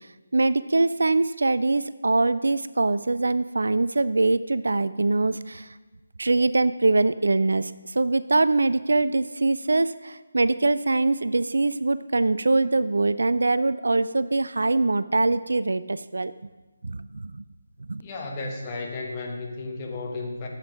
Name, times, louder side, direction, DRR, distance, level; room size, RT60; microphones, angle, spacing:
voice 1, 0.3-5.7 6.2-16.3 16.8-17.4 17.9-18.0, right 2 dB, 65° right, 15 dB, 0.3 m, -23 dB
voice 2, 18.0-20.5, left 3 dB, 25° left, 0 dB, 1.3 m, -33 dB
10.0 x 7.3 x 5.0 m, 1.2 s
figure-of-eight pair, 150°, 0 cm